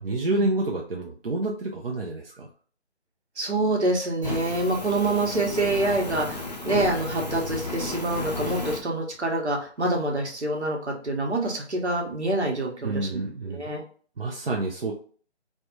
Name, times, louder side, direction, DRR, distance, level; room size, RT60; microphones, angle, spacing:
voice 1, 0.0-2.5 12.8-13.7 14.2-14.9, right 2 dB, 55° right, -1 dB, 0.6 m, -28 dB
voice 2, 3.4-13.8, right 2 dB, 75° right, 1 dB, 1.1 m, -26 dB
Fire, 4.2-8.8, left 3 dB, 40° left, 0.5 m, -33 dB
3.3 x 2.1 x 2.8 m, 0.44 s
figure-of-eight pair, 160°, 34 cm